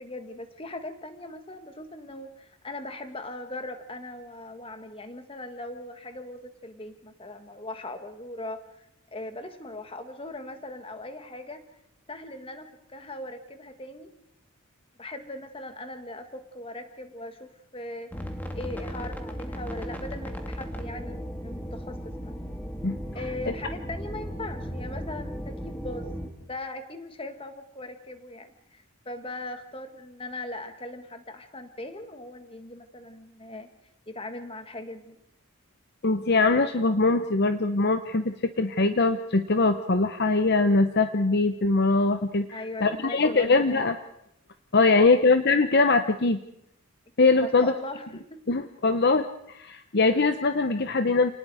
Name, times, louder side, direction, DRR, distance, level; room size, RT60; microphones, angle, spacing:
voice 1, 0.0-8.9 9.1-11.6 12.1-14.1 15.0-22.3 23.1-26.1 26.4-33.7 34.1-35.2 42.5-43.8 44.9-45.2 47.4-48.6, left 2 dB, 25° left, 7 dB, 1.8 m, -39 dB
sound 1, 18.1-26.3, equal, 10° left, 1.8 m, -36 dB
voice 2, 36.0-43.9 44.7-46.4 47.2-47.7 48.5-51.3, left 3 dB, 50° left, 9 dB, 0.8 m, -22 dB
29.0 x 19.5 x 4.9 m, 0.77 s
head